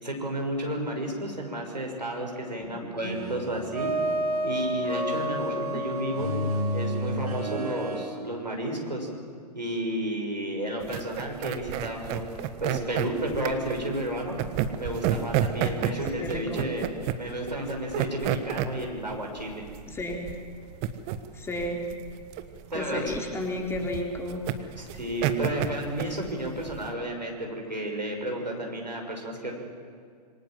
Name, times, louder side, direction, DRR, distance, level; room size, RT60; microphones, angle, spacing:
voice 1, 0.0-3.9 4.4-6.3 6.7-9.1 9.5-12.2 12.6-14.4 14.8-19.6 22.7-23.0 24.8-29.5, right 1 dB, 85° right, 1 dB, 6.4 m, -32 dB
sound 1, 3.0-8.1, equal, 65° right, 7.2 m, -30 dB
sound 2, 10.8-26.9, right 11 dB, 30° right, 1.4 m, -31 dB
voice 2, 15.6-16.6 19.9-20.2 21.3-21.8 22.7-24.4, left 1 dB, 10° left, 1 dB, 3.6 m, -33 dB
26.5 x 25.0 x 7.7 m, 2.2 s
figure-of-eight pair, 110°, 21 cm